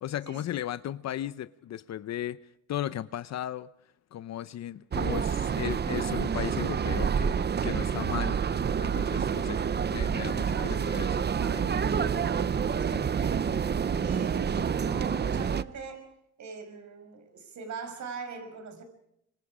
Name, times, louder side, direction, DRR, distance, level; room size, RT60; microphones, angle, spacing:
voice 1, 0.0-2.4 2.7-3.7 4.1-7.4 7.6-8.4 8.8-9.6 9.9-11.3 12.9-13.1, left 12 dB, 60° left, 0.7 m, -36 dB
sound 1, 4.9-15.6, right 7 dB, 35° right, 0.8 m, -28 dB
voice 2, 10.5-11.0 11.3-13.4 14.0-16.1 16.4-18.8, right 4 dB, 65° right, 5.9 m, -41 dB
25.5 x 25.0 x 5.0 m
cardioid pair, 90°, 30 cm